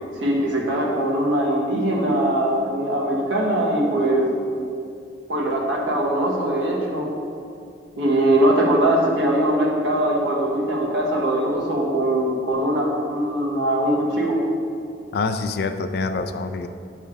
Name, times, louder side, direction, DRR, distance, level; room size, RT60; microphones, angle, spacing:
voice 1, 0.2-4.3 5.3-7.1 8.0-14.4, right 1 dB, 85° right, -2 dB, 1.2 m, -21 dB
voice 2, 15.1-16.7, left 4 dB, 60° left, 8 dB, 0.3 m, -25 dB
8.2 x 3.2 x 4.9 m, 2.5 s
head